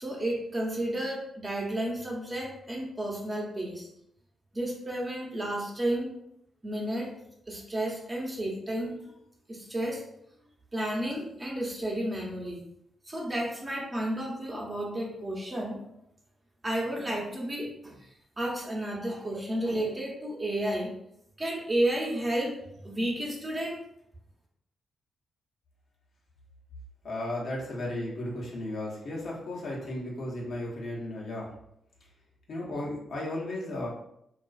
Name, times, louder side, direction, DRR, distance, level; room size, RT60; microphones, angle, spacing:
voice 1, 0.0-3.9 4.5-6.1 6.6-7.1 7.5-9.1 9.5-10.0 10.7-12.6 13.1-15.8 16.6-18.0 18.4-20.9 21.4-23.8, right 1 dB, 30° right, -3 dB, 0.9 m, -32 dB
voice 2, 27.0-31.5 32.5-33.9, left 1 dB, 60° left, -4 dB, 0.9 m, -35 dB
2.4 x 2.3 x 2.4 m, 0.75 s
hypercardioid pair, 40°, 0 cm